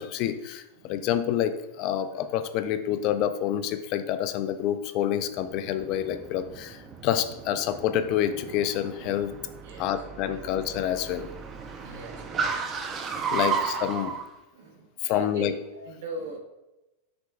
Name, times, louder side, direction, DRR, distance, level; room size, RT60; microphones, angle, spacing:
voice 1, 0.0-9.3 9.8-11.3 13.3-14.2 15.0-15.5, left 10 dB, 45° left, 10 dB, 0.3 m, -28 dB
Car, 5.3-14.2, right 5 dB, 25° right, 0.4 m, -34 dB
voice 2, 11.7-12.8 13.5-13.6 13.9-14.0 14.5-16.4, right 2 dB, 75° right, 0 dB, 1.2 m, -41 dB
6.0 x 2.2 x 3.5 m, 1.0 s
supercardioid pair, 145°, 0 cm